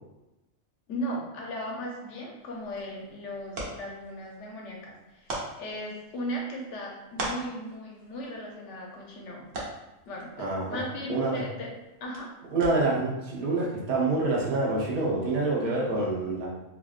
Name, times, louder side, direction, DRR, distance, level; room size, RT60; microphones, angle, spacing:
voice 1, 0.9-9.4 10.0-11.7 12.0-12.3 15.6-16.0, equal, 65° left, -1 dB, 0.9 m, -37 dB
sound 1, 2.4-13.1, right 2 dB, 70° right, 1.1 m, -42 dB
voice 2, 10.4-10.8 11.1-11.4 12.5-16.5, right 2 dB, 50° right, -4 dB, 0.8 m, -27 dB
3.4 x 2.4 x 2.4 m, 1.0 s
omnidirectional pair, 1.4 m